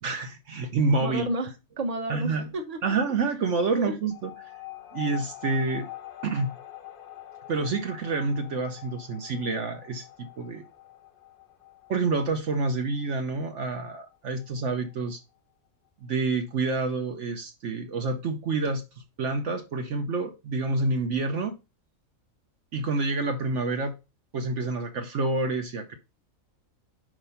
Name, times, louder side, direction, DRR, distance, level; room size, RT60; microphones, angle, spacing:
voice 1, 0.0-1.3 2.1-2.5 2.8-4.3 4.9-5.9 6.2-6.5 7.5-10.6 11.9-15.2 16.0-18.8 19.2-21.5 22.7-24.0 24.3-26.0, right 3 dB, 65° right, 1.1 m, -28 dB
voice 2, 1.0-2.8 3.8-4.0, right 1 dB, 30° right, 1.1 m, -31 dB
sound 1, 4.1-15.0, left 14 dB, 50° left, 0.8 m, -45 dB
5.1 x 4.9 x 5.6 m
omnidirectional pair, 1.4 m